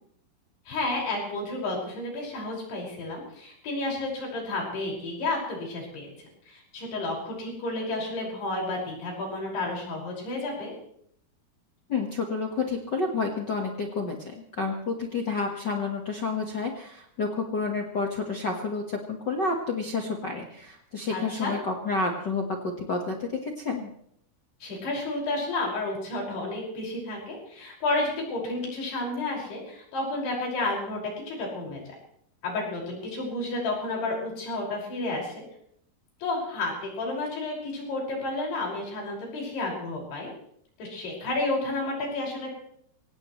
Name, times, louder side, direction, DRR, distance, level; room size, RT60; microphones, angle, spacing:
voice 1, 0.7-10.7 21.1-21.5 24.6-31.0 31.3-31.8 32.4-35.4 36.2-40.3 40.8-42.5, left 2 dB, 90° left, -2 dB, 7.8 m, -31 dB
voice 2, 11.9-23.9, left 4 dB, 60° left, 1 dB, 1.1 m, -30 dB
24.0 x 18.0 x 3.2 m, 0.68 s
omnidirectional pair, 4.5 m